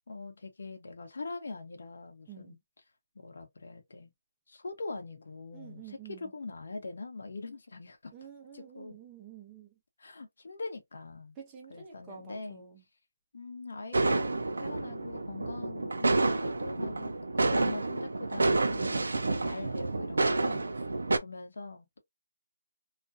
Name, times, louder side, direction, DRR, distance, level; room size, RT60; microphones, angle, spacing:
voice 1, 0.1-2.6 3.1-4.1 4.5-8.1 8.5-9.0 10.0-11.4 11.7-12.6 13.3-20.8 21.2-22.0, left 3 dB, 60° left, 0.9 m, -43 dB
voice 2, 2.3-2.6 5.5-6.3 8.1-9.7 11.4-12.8, right 7 dB, 10° right, 0.6 m, -49 dB
sound 1, 13.9-21.2, right 2 dB, 80° right, 0.5 m, -29 dB
2.4 x 2.1 x 2.5 m
hypercardioid pair, 170°, 0 cm